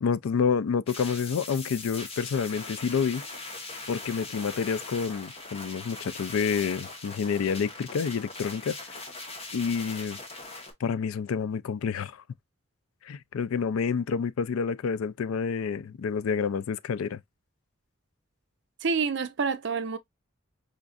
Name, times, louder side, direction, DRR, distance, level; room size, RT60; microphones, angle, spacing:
voice 1, 0.0-3.2 3.9-8.8 9.5-10.2 10.8-12.2 13.0-17.2, left 6 dB, 85° left, 0.4 m, -28 dB
sound 1, 0.9-10.7, left 3 dB, 30° left, 0.9 m, -40 dB
voice 2, 18.8-20.0, right 5 dB, 55° right, 0.5 m, -28 dB
5.0 x 2.5 x 2.3 m
head